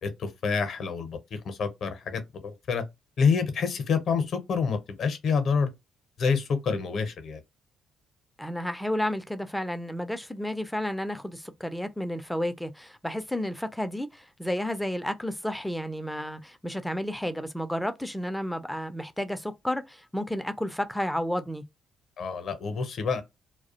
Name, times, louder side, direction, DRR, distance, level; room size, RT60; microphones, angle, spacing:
voice 1, 0.0-2.8 3.2-5.7 6.2-7.4 22.2-23.2, left 5 dB, 50° left, 0.6 m, -27 dB
voice 2, 8.4-21.6, left 1 dB, 5° left, 0.4 m, -31 dB
2.3 x 2.0 x 2.7 m
figure-of-eight pair, 45°, 0 cm